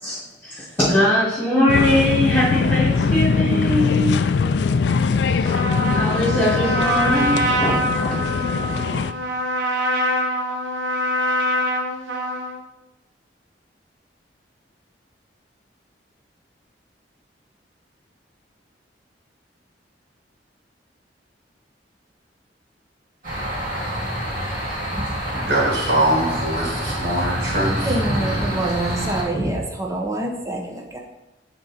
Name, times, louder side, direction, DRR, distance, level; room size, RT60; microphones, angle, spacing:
voice 1, 0.0-4.1 5.2-5.5 5.9-8.1, left 1 dB, 10° left, 2.2 m, -21 dB
sound 1, 1.7-9.1, left 5 dB, 70° left, 0.4 m, -21 dB
Trumpet, 5.4-12.6, equal, 90° right, 1.0 m, -24 dB
sound 2, 23.2-29.2, equal, 50° right, 2.5 m, -27 dB
voice 2, 25.3-28.0, right 1 dB, 65° right, 2.7 m, -22 dB
voice 3, 27.8-31.0, right 1 dB, 20° right, 0.9 m, -25 dB
9.3 x 3.8 x 4.3 m
head